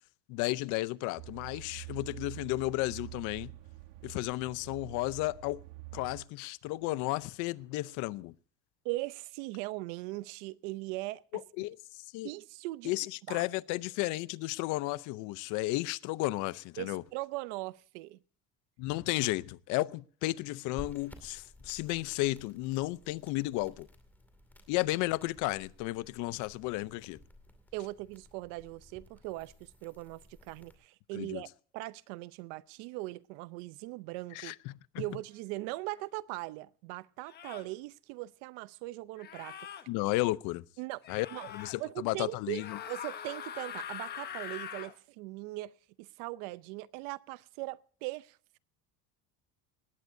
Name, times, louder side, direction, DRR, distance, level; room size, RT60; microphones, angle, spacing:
voice 1, 0.3-3.5 4.0-5.6 5.9-8.3 11.6-12.3 12.8-17.0 18.8-23.9 24.7-27.2 31.1-31.4 34.3-35.0 39.9-40.6 41.1-42.8, left 19 dB, 65° left, 0.7 m, -33 dB
sound 1, 1.2-6.2, right 18 dB, 65° right, 1.3 m, -47 dB
voice 2, 8.8-11.2 12.2-12.9 13.3-13.4 16.8-18.2 27.7-31.5 31.7-34.5 35.0-39.6 40.8-41.0 41.3-41.5 41.8-48.6, right 19 dB, 85° right, 0.7 m, -40 dB
sound 2, 20.8-30.7, left 1 dB, 5° left, 2.4 m, -55 dB
sound 3, 35.9-36.0 37.3-37.7 39.2-39.8 41.0-41.8 42.5-44.9, left 9 dB, 30° left, 1.2 m, -43 dB
18.5 x 17.5 x 2.7 m
cardioid pair, 160°, 33 cm